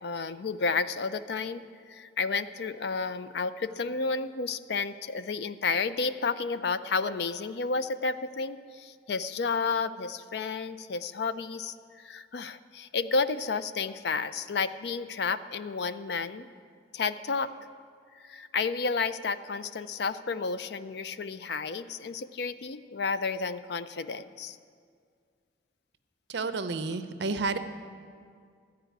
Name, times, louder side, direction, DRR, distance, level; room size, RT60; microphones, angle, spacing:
voice 1, 0.0-16.5 16.9-17.5 18.1-24.6, left 4 dB, 60° left, 13 dB, 0.4 m, -31 dB
voice 2, 26.3-27.6, right 3 dB, 65° right, 10 dB, 0.6 m, -30 dB
14.0 x 4.9 x 9.2 m, 2.1 s
head